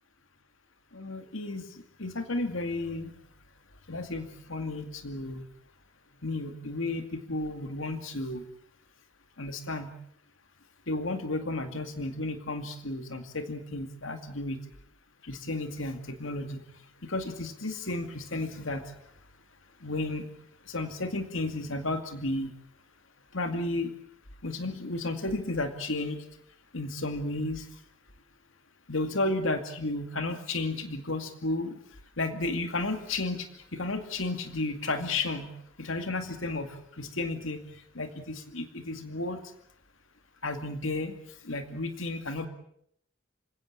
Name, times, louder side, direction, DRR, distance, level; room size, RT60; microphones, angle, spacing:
voice 1, 0.9-1.6 2.0-3.1 3.9-5.4 6.2-8.4 9.4-9.9 10.9-14.6 15.2-16.6 17.0-18.8 19.8-20.3 20.7-22.5 23.3-23.9 24.4-26.2 26.7-27.6 28.9-31.8 32.2-33.5 33.7-35.5 35.8-36.7 37.0-37.6 38.0-39.4 40.4-41.1 41.4-42.5, left 2 dB, 85° left, 7 dB, 2.3 m, -32 dB
27.0 x 17.0 x 8.8 m, 0.69 s
head